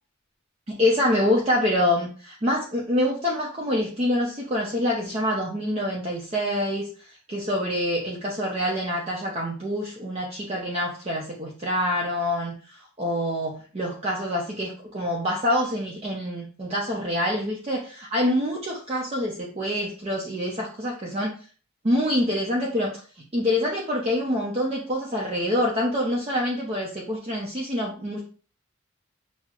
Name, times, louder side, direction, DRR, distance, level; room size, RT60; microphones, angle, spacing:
voice 1, 0.7-21.3 21.8-23.0 23.3-28.2, left 1 dB, 30° right, -3 dB, 0.5 m, -26 dB
5.8 x 2.0 x 2.3 m, 0.40 s
head